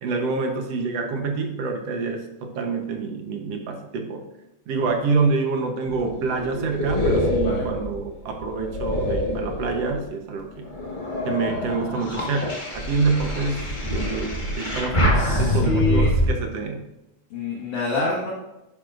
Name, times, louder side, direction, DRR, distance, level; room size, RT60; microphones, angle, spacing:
voice 1, 0.0-4.3 4.7-10.7 11.2-16.9, right 4 dB, 65° right, 3 dB, 1.9 m, -27 dB
sound 1, 5.8-10.1 10.6-16.3, left 1 dB, 25° left, 1.2 m, -25 dB
voice 2, 15.1-16.1 17.3-18.3, left 3 dB, 55° left, -5 dB, 2.4 m, -26 dB
10.5 x 9.8 x 2.6 m, 0.96 s
omnidirectional pair, 3.4 m